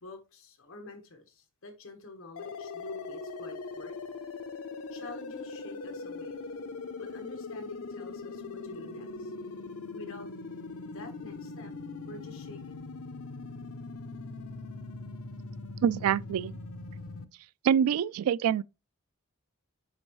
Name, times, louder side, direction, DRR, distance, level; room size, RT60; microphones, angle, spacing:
voice 1, 0.0-3.9 4.9-6.3 6.9-9.3 9.9-10.3 10.9-11.7 12.1-12.9, left 3 dB, 65° left, 1.3 m, -48 dB
sound 1, 2.4-17.3, left 3 dB, 85° left, 0.7 m, -41 dB
voice 2, 15.8-16.6 17.6-18.6, right 8 dB, 85° right, 0.3 m, -25 dB
8.3 x 5.2 x 3.1 m
head